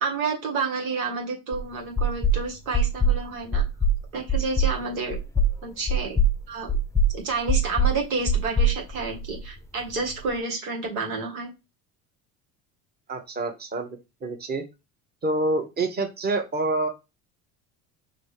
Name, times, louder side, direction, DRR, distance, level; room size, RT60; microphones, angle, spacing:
voice 1, 0.0-3.6 4.1-5.2 5.6-6.2 6.5-6.8 7.1-11.5, right 4 dB, 90° right, 0 dB, 1.7 m, -30 dB
sound 1, 1.5-1.6 2.0-2.4 2.7-3.2 3.5-4.0 4.3-4.7 5.1-5.5 5.9-6.3 6.7-7.1 7.5-7.9 8.3-9.5, right 1 dB, 5° left, 0.5 m, -21 dB
voice 2, 13.1-14.6 15.2-16.9, right 2 dB, 25° right, 4 dB, 1.1 m, -27 dB
5.2 x 2.8 x 3.3 m, 0.26 s
supercardioid pair, 85°, 41 cm